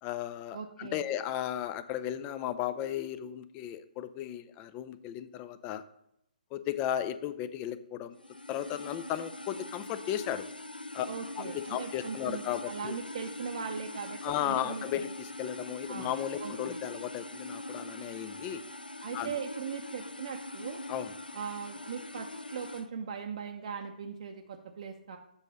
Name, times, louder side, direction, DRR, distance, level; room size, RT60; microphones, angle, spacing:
voice 1, 0.0-5.8 6.5-8.2 8.5-10.5 10.9-11.1 11.4-12.9 14.2-18.6 19.1-19.4 20.9-21.1, left 11 dB, 25° left, 13 dB, 0.4 m, -35 dB
voice 2, 0.5-1.1 11.1-15.1 15.9-16.1 16.4-16.8 19.0-20.8 21.3-25.2, right 6 dB, 50° right, 3 dB, 0.6 m, -40 dB
sound 1, 8.2-22.9, left 2 dB, 90° left, 0.5 m, -42 dB
7.1 x 4.1 x 6.6 m, 0.80 s
figure-of-eight pair, 130°, 5 cm